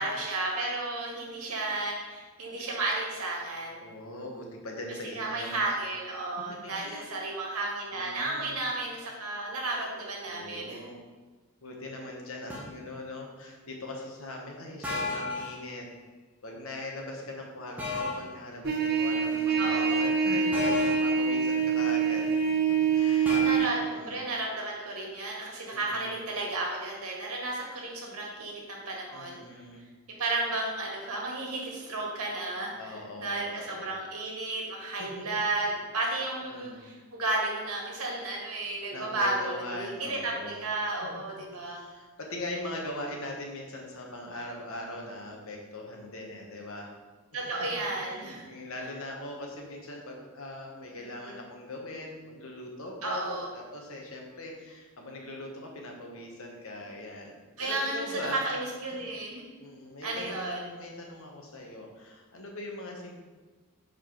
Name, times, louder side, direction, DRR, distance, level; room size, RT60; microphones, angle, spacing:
voice 1, 0.0-3.8 5.0-10.8 19.6-20.0 23.3-29.4 30.2-41.8 47.3-48.4 51.1-51.3 53.0-53.5 57.6-59.4 60.0-60.7, right 2 dB, 85° right, -1 dB, 1.8 m, -33 dB
voice 2, 3.8-5.6 6.5-7.1 7.9-8.6 10.3-11.0 11.6-15.9 16.4-22.4 22.7-23.5 23.7-24.2 25.1-25.2 25.7-26.2 29.1-29.9 32.7-33.9 34.9-35.2 36.4-36.8 38.9-40.7 41.6-46.9 47.3-58.4 58.9-59.0 59.6-63.2, left 1 dB, 70° left, 1 dB, 1.3 m, -41 dB
sound 1, 12.5-12.8 14.8-15.6 17.8-18.3 20.5-21.1 23.3-23.6, left 3 dB, 5° right, 1.1 m, -32 dB
Trumpet, 18.6-23.7, right 6 dB, 50° right, 1.0 m, -25 dB
4.8 x 4.8 x 5.9 m, 1.3 s
head